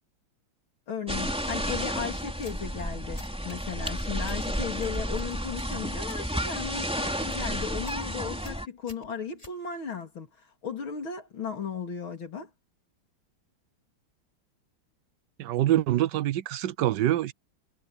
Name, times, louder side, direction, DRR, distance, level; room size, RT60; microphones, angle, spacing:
voice 1, 0.9-10.3 10.6-12.5, left 6 dB, 75° left, 3.9 m, -36 dB
sound 1, 1.1-8.7, equal, 5° right, 3.5 m, -32 dB
sound 2, 2.3-2.7 3.2-4.5 4.8-6.3 6.6-6.9 7.2-7.5 7.8-8.1 8.4-10.0, left 1 dB, 15° left, 5.4 m, -50 dB
voice 2, 15.4-17.3, right 13 dB, 65° right, 1.3 m, -25 dB
omnidirectional pair, 2.2 m